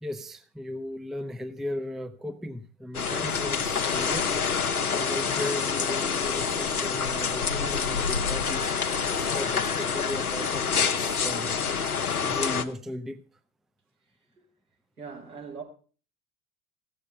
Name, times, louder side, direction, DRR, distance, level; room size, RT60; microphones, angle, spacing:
voice 1, 0.0-4.5 4.9-11.6 12.1-13.3, left 1 dB, ahead, 0.5 m, -36 dB
sound 1, 2.9-12.6, left 6 dB, 85° left, 0.8 m, -27 dB
voice 2, 15.0-15.6, right 5 dB, 85° right, 3.6 m, -40 dB
15.5 x 7.0 x 5.3 m
figure-of-eight pair, 70°, 43 cm